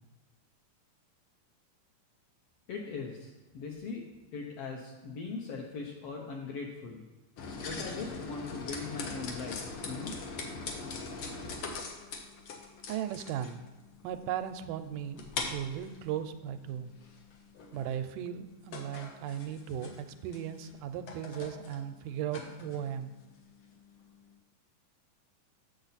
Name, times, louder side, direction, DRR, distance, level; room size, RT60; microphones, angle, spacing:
voice 1, 2.7-4.0 4.3-7.0 7.6-10.2, left 4 dB, 70° left, 0 dB, 1.5 m, -40 dB
sound 1, 7.4-24.3, left 4 dB, 90° left, 1.1 m, -42 dB
voice 2, 12.9-13.6 14.0-15.2 15.5-16.9 17.7-23.1, right 10 dB, 90° right, 9 dB, 2.1 m, -37 dB
8.2 x 6.9 x 4.0 m, 1.1 s
omnidirectional pair, 3.7 m